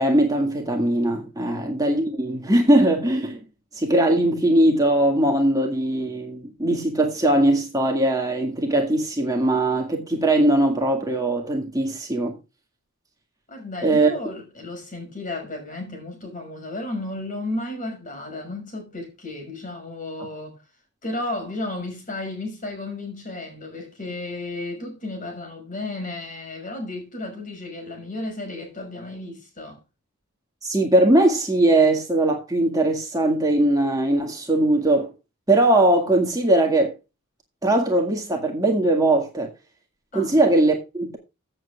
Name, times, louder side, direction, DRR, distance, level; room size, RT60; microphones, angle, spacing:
voice 1, 0.0-3.4 3.7-12.4 13.8-14.1 30.6-35.1 35.5-37.0 37.6-39.5 40.1-41.2, right 1 dB, 15° right, 2.0 m, -20 dB
voice 2, 13.5-20.6 21.0-29.8 40.1-40.4, left 2 dB, 35° left, 5.7 m, -33 dB
15.5 x 7.7 x 2.4 m
head